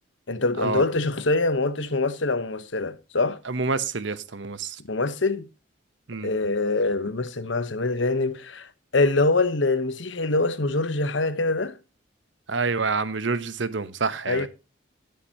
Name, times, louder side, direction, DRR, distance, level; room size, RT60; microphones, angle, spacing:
voice 1, 0.3-3.4 4.9-5.5 6.2-11.8 14.3-14.5, left 3 dB, 75° left, 1.1 m, -24 dB
voice 2, 3.4-4.8 6.1-6.3 12.5-14.5, right 4 dB, 70° right, 0.9 m, -27 dB
19.0 x 6.8 x 2.9 m
head